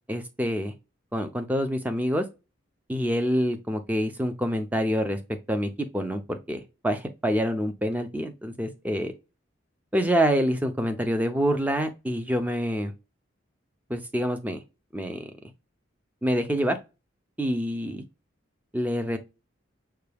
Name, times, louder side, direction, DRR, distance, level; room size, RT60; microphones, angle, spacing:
voice 1, 0.1-0.7 1.1-2.2 2.9-5.2 5.5-9.1 9.9-12.9 13.9-14.6 14.9-15.3 16.2-16.8 17.4-18.0 18.7-19.2, equal, 10° right, 0.4 m, -26 dB
5.7 x 2.3 x 3.3 m
head